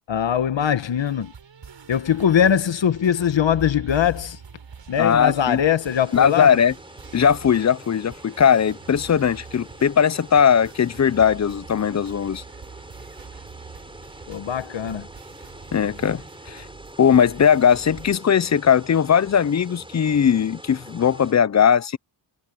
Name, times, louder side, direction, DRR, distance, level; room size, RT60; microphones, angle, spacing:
voice 1, 0.1-1.3 1.9-4.4 4.9-6.5 14.3-15.1, left 9 dB, 70° left, 1.3 m, -21 dB
sound 1, 1.0-18.2, right 6 dB, 65° right, 5.4 m, -45 dB
voice 2, 5.0-5.6 6.1-6.7 7.1-12.4 15.7-16.7 17.0-22.0, left 7 dB, 35° left, 0.5 m, -19 dB
sound 2, 5.8-21.3, right 1 dB, 10° right, 4.7 m, -44 dB
wide cardioid pair, 90°, 47 cm